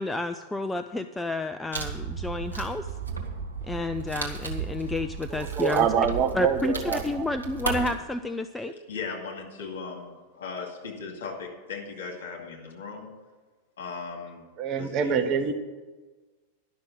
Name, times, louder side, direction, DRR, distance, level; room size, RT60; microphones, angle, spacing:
voice 1, 0.0-2.9 3.7-5.9 6.3-8.7, left 2 dB, 10° left, 9 dB, 0.4 m, -30 dB
Wood, 1.7-7.9, right 5 dB, 75° right, 1.6 m, -34 dB
voice 2, 5.3-7.2 8.7-8.8 14.6-15.5, right 7 dB, 35° right, 6 dB, 0.9 m, -26 dB
voice 3, 8.9-13.1 13.8-14.4 14.8-15.3, left 4 dB, 60° left, 1 dB, 2.4 m, -38 dB
11.0 x 6.2 x 8.9 m, 1.3 s
figure-of-eight pair, 90°, 0 cm